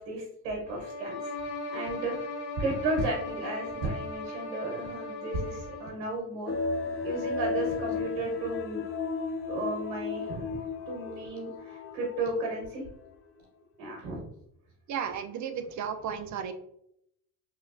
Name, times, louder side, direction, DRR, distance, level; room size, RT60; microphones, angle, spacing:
voice 1, 0.0-1.4 1.7-6.5 7.0-8.9 9.5-10.6 10.9-12.8 13.8-14.3, right 2 dB, 75° right, 0 dB, 1.3 m, -34 dB
sound 1, 0.6-6.0, left 2 dB, 55° left, 1.1 m, -38 dB
sound 2, 6.5-12.7 13.0-13.1, left 4 dB, 30° left, 0.5 m, -34 dB
voice 2, 14.9-16.5, right 7 dB, 40° right, 9 dB, 0.5 m, -34 dB
3.7 x 3.0 x 2.5 m, 0.75 s
hypercardioid pair, 70°, 48 cm